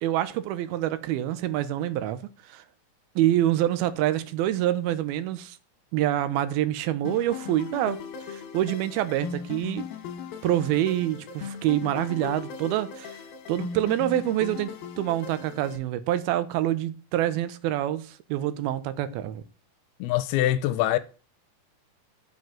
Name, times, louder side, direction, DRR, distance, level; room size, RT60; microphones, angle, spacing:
voice 1, 0.0-2.2 2.5-2.6 3.2-5.6 5.9-8.0 8.3-9.8 10.4-13.2 13.5-14.7 15.0-19.4, right 13 dB, 85° right, 2.5 m, -26 dB
sound 1, 7.0-15.8, left 6 dB, 70° left, 2.8 m, -38 dB
voice 2, 20.0-21.0, left 13 dB, 90° left, 2.6 m, -24 dB
7.7 x 7.4 x 3.8 m
omnidirectional pair, 4.5 m